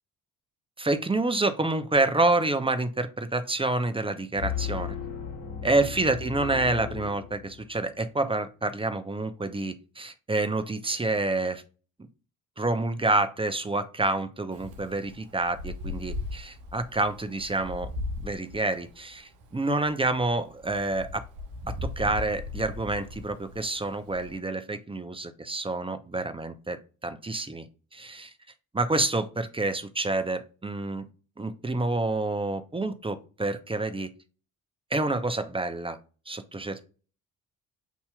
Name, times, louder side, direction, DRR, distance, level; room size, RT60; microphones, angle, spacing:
voice 1, 0.8-5.0 5.6-11.6 12.6-17.9 18.2-21.2 21.7-26.8 27.0-27.6 27.9-28.3 28.7-31.1 31.4-34.1 34.9-36.0 36.3-36.9, right 2 dB, 15° right, 9 dB, 0.8 m, -28 dB
sound 1, 4.3-7.8, left 8 dB, 55° left, 1.8 m, -35 dB
Wind, 14.5-24.4, left 2 dB, 80° right, 0.8 m, -38 dB
8.1 x 2.8 x 2.3 m, 0.35 s
hypercardioid pair, 50°, 40 cm